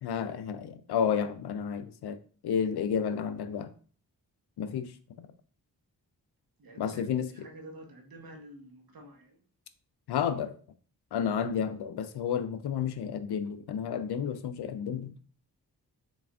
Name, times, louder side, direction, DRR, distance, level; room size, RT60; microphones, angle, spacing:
voice 1, 0.0-2.2 2.4-3.7 4.6-4.9 6.8-7.3 10.1-10.5 11.1-15.1, left 7 dB, 80° left, 0.5 m, -31 dB
voice 2, 6.6-9.4, right 1 dB, 65° right, 1.0 m, -49 dB
4.0 x 3.4 x 2.3 m
cardioid pair, 60°, 39 cm